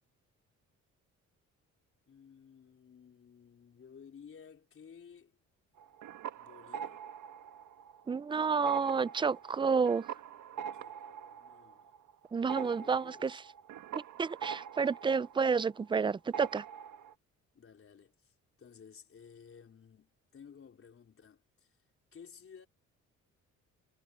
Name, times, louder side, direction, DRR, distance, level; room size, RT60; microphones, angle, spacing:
voice 1, 2.1-5.4 6.3-7.0 10.7-12.0 12.5-13.4 17.5-21.8 22.1-22.7, left 7 dB, 45° left, 4.3 m, -55 dB
sound 1, 5.8-8.2 8.5-16.0 16.3-17.1, right 8 dB, 75° right, 1.7 m, -44 dB
voice 2, 8.1-10.1 12.3-13.4 13.9-16.6, right 5 dB, 15° right, 0.4 m, -30 dB
cardioid pair, 90°, 30 cm